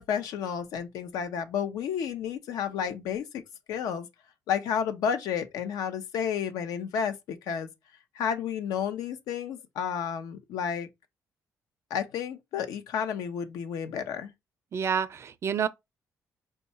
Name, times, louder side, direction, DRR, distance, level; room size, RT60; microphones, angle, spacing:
voice 1, 0.0-3.4 3.7-4.1 4.5-7.7 8.2-10.9 11.9-14.3, left 8 dB, 85° left, 0.7 m, -31 dB
voice 2, 14.7-15.7, right 7 dB, 45° right, 0.4 m, -28 dB
4.6 x 2.3 x 4.1 m
cardioid pair, 100°, 6 cm